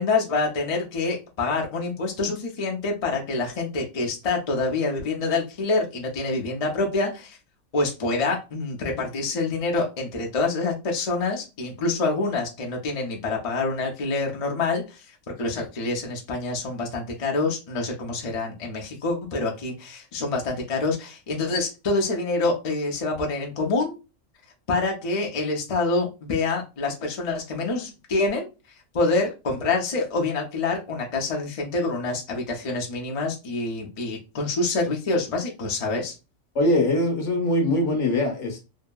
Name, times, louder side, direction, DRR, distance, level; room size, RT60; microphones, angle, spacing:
voice 1, 0.0-7.4 7.7-15.0 15.4-24.0 24.7-28.5 28.9-36.1, left 3 dB, 40° left, 0.5 m, -26 dB
voice 2, 36.5-38.6, left 1 dB, 65° left, 1.1 m, -22 dB
2.8 x 2.6 x 2.2 m
omnidirectional pair, 1.4 m